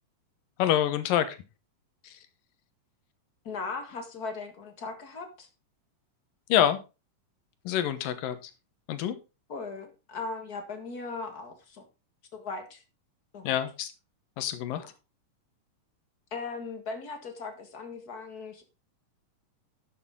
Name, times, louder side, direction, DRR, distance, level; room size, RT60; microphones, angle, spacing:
voice 1, 0.6-1.4 2.0-2.1 6.5-6.8 7.7-8.5 8.9-9.2 13.4-13.9 14.4-14.8, left 11 dB, 90° left, 11 dB, 2.8 m, -26 dB
voice 2, 3.4-5.5 9.5-11.8 12.3-12.8 13.3-13.6 14.7-14.8 16.3-18.6, left 4 dB, 35° left, 6 dB, 1.7 m, -38 dB
11.0 x 8.1 x 3.7 m, 0.28 s
omnidirectional pair, 3.8 m